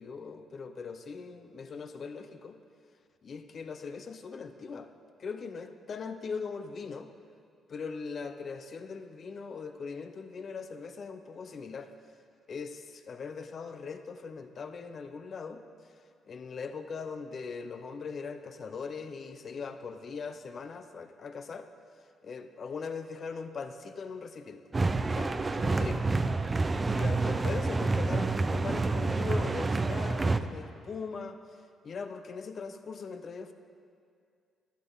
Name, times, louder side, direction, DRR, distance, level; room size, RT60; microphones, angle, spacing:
voice 1, 0.0-2.6 3.2-4.9 5.2-7.1 7.7-11.9 12.5-15.9 16.3-21.7 22.2-24.6 25.0-26.1 26.9-31.4 31.8-33.5, left 5 dB, 50° left, 8 dB, 0.7 m, -40 dB
sound 1, 24.7-30.4, right 3 dB, 25° right, 0.4 m, -28 dB
11.5 x 11.0 x 4.0 m, 2.3 s
cardioid pair, 90°, 0 cm